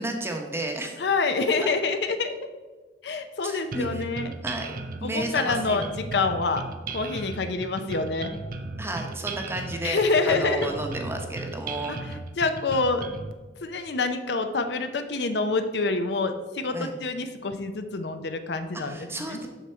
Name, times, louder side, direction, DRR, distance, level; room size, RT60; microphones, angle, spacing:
voice 1, 0.0-0.9 3.4-4.1 4.4-5.9 8.8-10.0 10.2-12.0 16.7-16.9 18.8-19.5, right 1 dB, 15° right, 3 dB, 0.8 m, -32 dB
voice 2, 1.0-2.4 3.0-4.3 5.0-6.6 6.9-8.3 9.8-10.7 11.9-12.0 12.4-13.0 13.6-19.4, left 3 dB, 70° left, 8 dB, 0.6 m, -26 dB
sound 1, 3.7-13.3, right 3 dB, 55° right, 0.6 m, -36 dB
6.5 x 6.2 x 4.4 m, 1.3 s
head